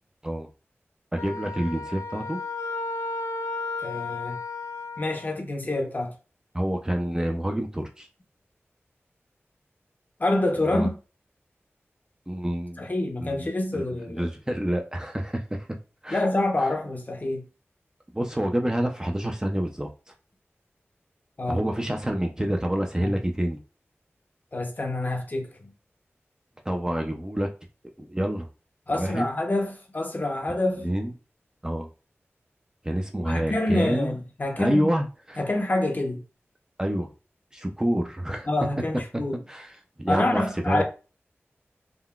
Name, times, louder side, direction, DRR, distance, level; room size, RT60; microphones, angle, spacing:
voice 1, 1.1-2.4 6.5-8.1 10.7-10.9 12.3-12.9 13.2-15.6 16.0-16.2 18.1-19.9 21.5-23.6 26.7-27.5 28.0-28.5 28.9-29.3 30.8-31.1 31.6-31.9 32.8-34.1 34.6-35.4 36.8-37.1 37.5-38.5 39.5-39.7 40.0-40.8, equal, 15° right, 0.4 m, -27 dB
Wind instrument woodwind instrument, 1.2-5.3, left 3 dB, 90° left, 0.4 m, -33 dB
voice 2, 3.8-4.4 5.0-6.1 10.2-10.9 12.8-14.3 16.1-17.4 21.4-21.6 23.0-23.2 24.5-25.7 28.9-30.9 33.2-34.9 35.4-36.2 38.5-39.4 40.1-40.8, left 2 dB, 40° left, 0.6 m, -27 dB
3.7 x 2.1 x 2.3 m
wide cardioid pair, 70°, 5 cm